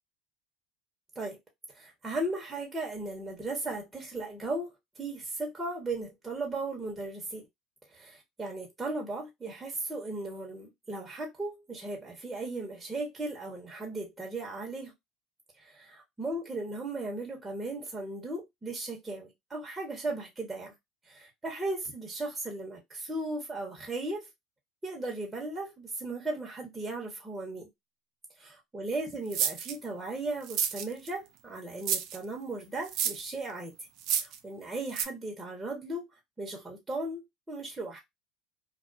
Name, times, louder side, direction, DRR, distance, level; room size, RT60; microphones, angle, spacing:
voice 1, 1.7-7.5 7.9-14.9 15.6-20.7 21.1-24.3 24.8-27.7 28.4-33.7 34.1-36.1 36.4-38.0, right 2 dB, 15° right, 1.0 m, -36 dB
sound 1, 29.3-29.7 30.4-31.1 31.8-32.2 32.9-33.3 34.0-34.4 34.9-35.0, right 9 dB, 60° right, 0.4 m, -30 dB
2.3 x 2.3 x 2.4 m
hypercardioid pair, 90°, 0 cm